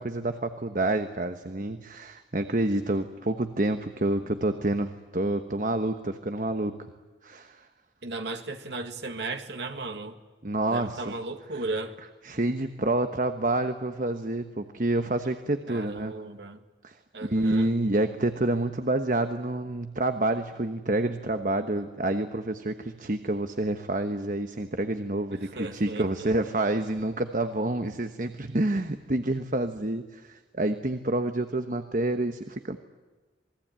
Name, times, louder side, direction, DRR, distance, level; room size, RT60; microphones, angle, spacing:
voice 1, 0.0-6.7 7.2-7.6 10.4-11.1 12.2-16.1 16.8-32.8, right 2 dB, 50° right, 8 dB, 1.2 m, -28 dB
voice 2, 8.0-10.2 10.7-11.9 15.7-16.6 17.1-17.7 25.3-26.4, right 2 dB, 75° right, 5 dB, 2.0 m, -36 dB
28.0 x 20.5 x 9.0 m, 1.2 s
head